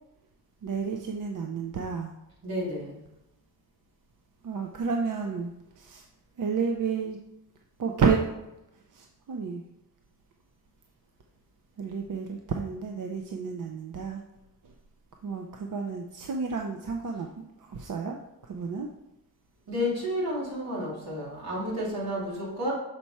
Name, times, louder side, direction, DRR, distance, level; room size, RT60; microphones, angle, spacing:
voice 1, 0.6-2.1 4.4-6.0 6.4-7.2 7.8-8.2 8.9-9.6 11.8-14.2 15.2-18.2 18.5-18.9, right 5 dB, 60° right, 3 dB, 0.6 m, -31 dB
voice 2, 2.4-3.0 19.7-22.7, equal, 80° right, -5 dB, 2.6 m, -31 dB
6.7 x 4.6 x 4.2 m, 0.91 s
wide cardioid pair, 115°, 36 cm